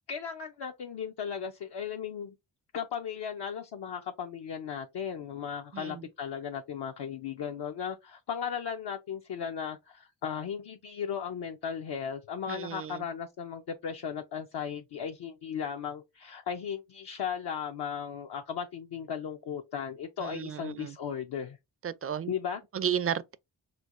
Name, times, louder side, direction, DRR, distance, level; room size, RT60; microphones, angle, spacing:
voice 1, 0.1-2.3 2.7-21.6 22.3-22.6, left 7 dB, 65° left, 0.6 m, -36 dB
voice 2, 12.5-13.0 20.2-20.9 21.8-22.3 22.7-23.3, right 9 dB, 35° right, 0.4 m, -33 dB
4.5 x 2.2 x 2.4 m
cardioid pair, 40°, 44 cm